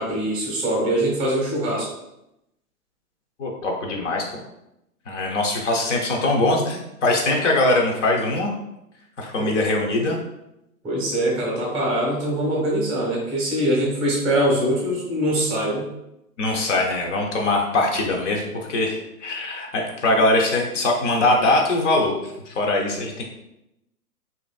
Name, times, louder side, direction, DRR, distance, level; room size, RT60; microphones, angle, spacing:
voice 1, 0.0-1.9 9.4-9.5 10.8-15.9, right 1 dB, 5° right, -5 dB, 0.5 m, -23 dB
voice 2, 3.4-4.4 5.1-8.5 9.2-10.2 16.4-22.2 22.5-23.2, left 2 dB, 50° left, 0 dB, 0.7 m, -22 dB
2.8 x 2.6 x 2.3 m, 0.86 s
hypercardioid pair, 140°, 47 cm